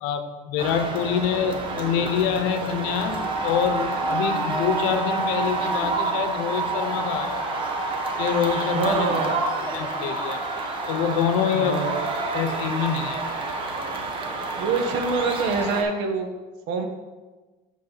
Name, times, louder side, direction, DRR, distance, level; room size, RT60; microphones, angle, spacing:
voice 1, 0.0-7.4 8.2-9.1 9.7-10.4 10.9-11.8 12.3-13.2, left 8 dB, 90° left, 9 dB, 0.9 m, -26 dB
sound 1, 0.6-15.8, right 3 dB, 30° right, 1.0 m, -28 dB
voice 2, 8.7-9.5 11.5-12.1 14.6-16.3 16.7-16.9, right 4 dB, 85° right, 5 dB, 1.3 m, -25 dB
8.5 x 6.2 x 4.0 m, 1.2 s
cardioid pair, 160°, 18 cm